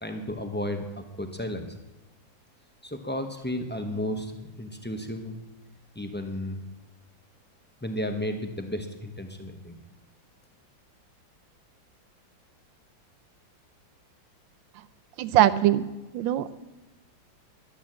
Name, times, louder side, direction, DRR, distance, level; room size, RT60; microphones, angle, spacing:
voice 1, 0.0-1.8 2.8-5.4 5.9-6.6 7.8-9.8, left 1 dB, 15° left, 5 dB, 0.4 m, -33 dB
voice 2, 15.2-15.9 16.1-16.6, right 12 dB, 80° right, 14 dB, 1.3 m, -21 dB
11.5 x 10.0 x 7.4 m, 1.0 s
omnidirectional pair, 2.1 m